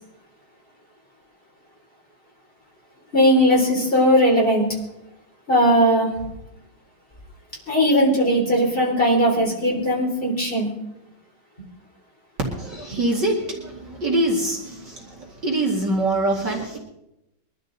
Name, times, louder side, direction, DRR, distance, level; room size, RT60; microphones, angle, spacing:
voice 1, 3.1-4.7 5.5-6.1 7.7-10.7, equal, 25° left, -3 dB, 4.1 m, -18 dB
voice 2, 12.5-13.7 14.0-14.6 15.4-16.8, right 1 dB, 50° right, -1 dB, 2.8 m, -23 dB
22.5 x 13.0 x 4.1 m, 0.86 s
omnidirectional pair, 2.4 m